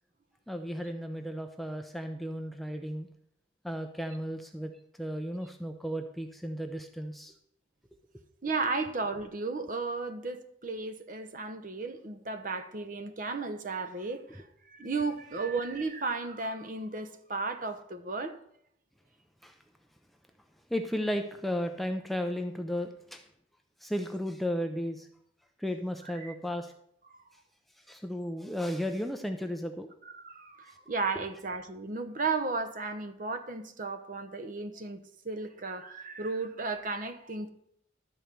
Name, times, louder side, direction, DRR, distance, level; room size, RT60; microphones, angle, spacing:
voice 1, 0.5-3.1 3.6-4.7 5.0-7.3 19.4-19.5 20.7-23.2 23.8-25.1 25.6-26.7 27.9-29.9 31.2-31.3, equal, ahead, 0.5 m, -34 dB
voice 2, 8.4-14.4 14.7-18.4 26.1-26.3 30.0-37.5, right 3 dB, 45° right, 0.9 m, -34 dB
12.5 x 4.5 x 6.8 m
head